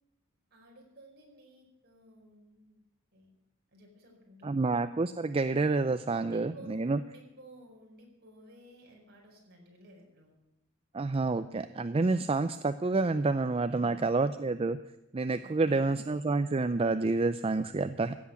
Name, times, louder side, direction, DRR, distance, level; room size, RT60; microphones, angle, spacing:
voice 1, 0.5-2.8 3.1-3.3 3.7-4.5 6.1-10.4 13.7-14.4 15.4-15.9, equal, 50° right, -1 dB, 5.1 m, -54 dB
voice 2, 4.4-7.0 10.9-14.8 15.1-18.2, right 3 dB, 25° right, 11 dB, 0.4 m, -28 dB
16.0 x 8.3 x 8.4 m, 0.95 s
head